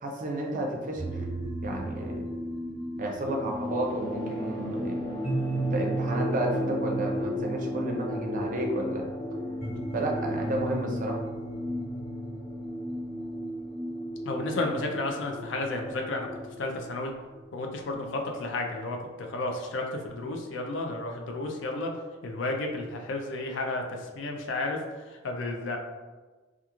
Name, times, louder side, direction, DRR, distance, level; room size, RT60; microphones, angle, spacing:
voice 1, 0.0-1.2 1.6-2.2 3.0-5.0 5.5-9.0 9.9-11.2, right 1 dB, 45° right, 0 dB, 0.4 m, -31 dB
sound 1, 1.0-16.5, right 1 dB, 60° left, 1.2 m, -35 dB
sound 2, 3.5-18.4, equal, 20° left, 0.6 m, -38 dB
voice 2, 14.3-16.3 16.6-17.1 17.5-21.9 22.2-24.8 25.2-25.8, left 2 dB, 80° left, 3 dB, 0.4 m, -32 dB
2.4 x 2.3 x 2.9 m, 1.3 s
head